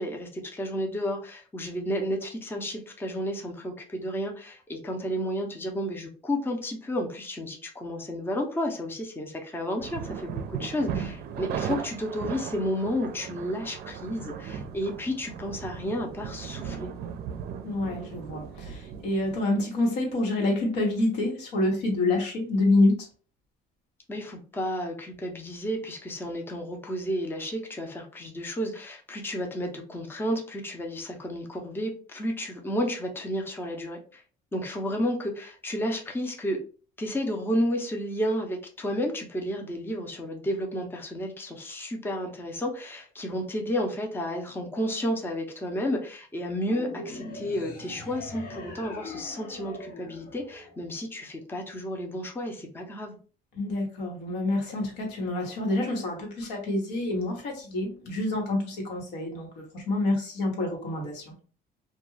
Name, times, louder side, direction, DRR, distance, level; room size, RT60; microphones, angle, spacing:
voice 1, 0.0-16.9 24.1-34.2 34.5-36.6 37.0-53.2, equal, 15° left, 2 dB, 0.5 m, -32 dB
sound 1, 9.8-19.4, right 7 dB, 65° right, 0.4 m, -37 dB
voice 2, 17.6-23.1 53.6-61.3, left 2 dB, 85° left, 0 dB, 1.1 m, -27 dB
sound 2, 46.6-51.2, left 2 dB, 60° left, 0.8 m, -41 dB
2.3 x 2.2 x 3.1 m, 0.39 s
cardioid pair, 110°, 17 cm